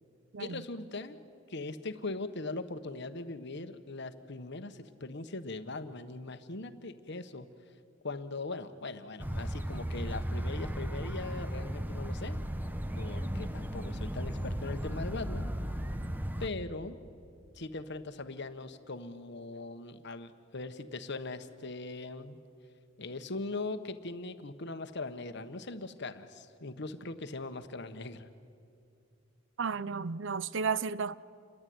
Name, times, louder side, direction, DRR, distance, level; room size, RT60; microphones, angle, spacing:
voice 1, 0.4-1.2 1.5-7.5 8.0-12.4 13.0-15.5 16.4-17.0 17.5-22.4 23.0-28.3, left 3 dB, 60° left, 1.3 m, -40 dB
sound 1, 9.2-16.5, equal, 10° right, 1.1 m, -35 dB
voice 2, 29.6-31.2, right 5 dB, 70° right, 0.6 m, -33 dB
29.0 x 22.0 x 9.5 m
head